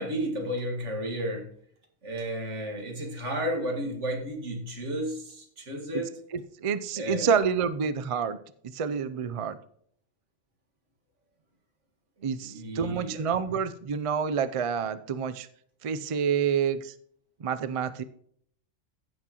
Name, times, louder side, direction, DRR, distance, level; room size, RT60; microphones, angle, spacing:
voice 1, 0.0-1.5 2.0-6.2 7.0-7.4 12.4-13.2, equal, 80° right, 3 dB, 2.2 m, -32 dB
voice 2, 6.3-8.4 8.6-9.6 12.2-15.5 15.8-16.9 17.4-18.0, right 6 dB, 45° right, 13 dB, 0.4 m, -28 dB
15.0 x 6.1 x 3.0 m, 0.64 s
omnidirectional pair, 1.2 m